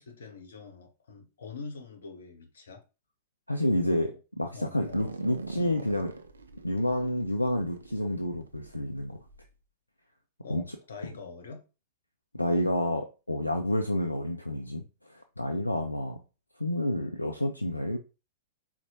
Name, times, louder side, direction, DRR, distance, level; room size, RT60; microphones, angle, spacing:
voice 1, 0.0-2.8 3.8-4.2 4.5-5.1 10.4-11.6, left 4 dB, 65° left, 0.8 m, -44 dB
voice 2, 3.5-4.1 4.4-6.1 6.6-9.2 10.5-10.6 12.3-14.8 15.1-16.2 16.6-18.0, left 1 dB, 85° left, 0.3 m, -29 dB
sound 1, 4.8-9.4, right 3 dB, 75° right, 0.4 m, -43 dB
4.1 x 2.1 x 2.8 m
figure-of-eight pair, 95°, 0 cm